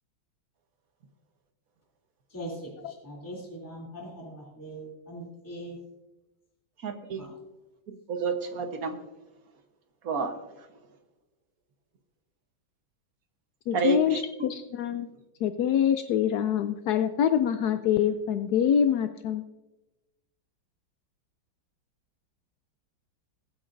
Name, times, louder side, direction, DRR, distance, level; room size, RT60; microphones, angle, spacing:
voice 1, 2.3-2.7 3.0-5.8 7.2-7.3, right 1 dB, 10° left, 2.9 m, -40 dB
voice 2, 6.8-7.3 8.1-9.0 10.0-10.3 13.7-14.5, right 4 dB, 50° right, 1.4 m, -30 dB
voice 3, 13.7-15.1 15.4-19.4, left 9 dB, 75° left, 0.9 m, -25 dB
21.5 x 8.8 x 2.6 m
omnidirectional pair, 2.2 m